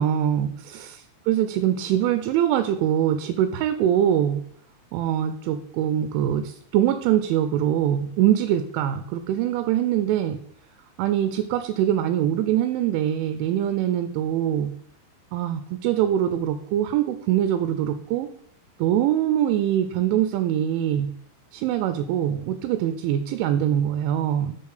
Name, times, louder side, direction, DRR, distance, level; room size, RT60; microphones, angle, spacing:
voice 1, 0.0-4.4 4.9-10.4 11.0-14.7 15.3-18.3 18.8-21.1 21.5-24.6, right 10 dB, 90° right, 9 dB, 3.1 m, -23 dB
6.5 x 5.9 x 6.5 m, 0.67 s
omnidirectional pair, 5.4 m